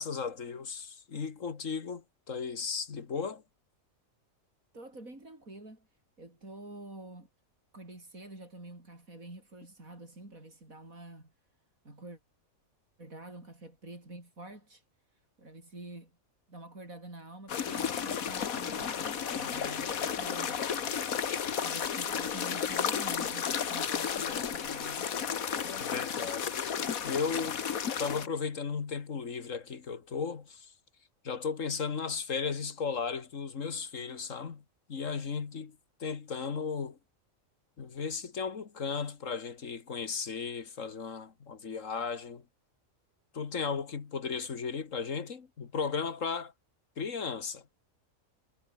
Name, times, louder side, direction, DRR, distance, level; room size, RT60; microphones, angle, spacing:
voice 1, 0.0-3.4 25.6-26.6 27.0-27.6 28.0-30.7 31.2-34.6 34.9-35.8 36.0-37.0 37.8-42.4 43.3-46.5 47.0-47.6, left 5 dB, 70° left, 2.0 m, -35 dB
voice 2, 4.7-5.9 6.2-7.3 7.7-11.3 11.8-12.2 13.0-14.8 15.1-16.1 16.5-20.7 21.6-25.1, right 2 dB, 80° right, 7.6 m, -47 dB
sound 1, 17.5-28.3, left 7 dB, 90° left, 1.8 m, -33 dB
omnidirectional pair, 1.4 m